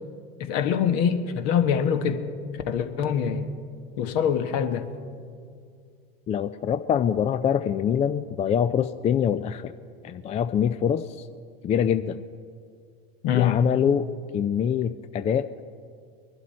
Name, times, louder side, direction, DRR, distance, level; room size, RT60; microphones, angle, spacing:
voice 1, 0.4-2.2 2.7-3.5 4.0-4.9 13.2-13.6, left 8 dB, 55° left, 8 dB, 1.3 m, -24 dB
voice 2, 6.3-9.7 10.0-11.3 11.6-12.2 13.3-14.1 14.3-15.5, left 8 dB, 25° left, 11 dB, 0.4 m, -24 dB
22.5 x 11.5 x 4.3 m, 2.2 s
hypercardioid pair, 95°, 30 cm